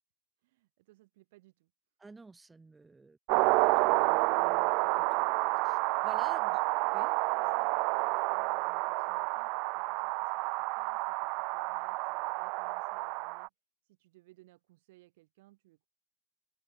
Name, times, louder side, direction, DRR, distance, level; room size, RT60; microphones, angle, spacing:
voice 1, 0.4-1.7 6.3-6.6 6.8-13.5 13.8-15.9, right 19 dB, 80° right, 7.8 m, -62 dB
voice 2, 2.0-5.2 5.6-6.6 6.9-7.1, right 3 dB, 10° right, 4.4 m, -52 dB
sound 1, 3.3-13.5, right 31 dB, 60° right, 0.6 m, -29 dB
open air
supercardioid pair, 135°, 0 cm